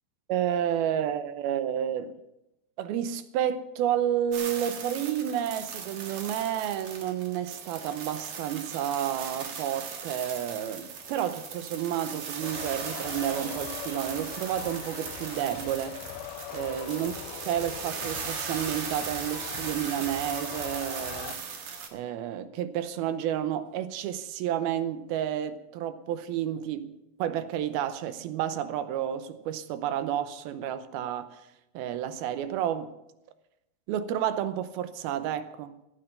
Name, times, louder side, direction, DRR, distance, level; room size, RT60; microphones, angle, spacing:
voice 1, 0.3-2.1 2.8-16.0 16.5-17.1 17.5-21.6 21.9-26.9 27.2-31.4 31.7-32.9 33.9-35.7, right 10 dB, 80° right, 2.7 m, -30 dB
sound 1, 4.3-21.9, right 6 dB, 55° right, 2.7 m, -38 dB
sound 2, 12.4-21.4, left 12 dB, 80° left, 1.9 m, -41 dB
15.5 x 9.0 x 6.6 m
omnidirectional pair, 4.4 m